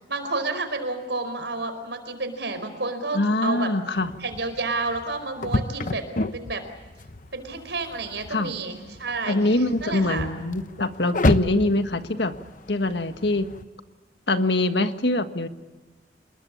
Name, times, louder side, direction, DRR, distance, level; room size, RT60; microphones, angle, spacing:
voice 1, 0.1-3.7 4.2-6.1 6.3-6.6 7.3-10.3, right 3 dB, 80° right, 8 dB, 4.8 m, -30 dB
voice 2, 3.1-4.1 8.3-8.5 9.3-12.3 12.7-13.5 14.3-15.5, left 2 dB, 75° left, 9 dB, 1.6 m, -23 dB
sound 1, 3.9-13.6, left 2 dB, 50° left, 1.0 m, -31 dB
27.0 x 21.5 x 8.7 m, 1.2 s
head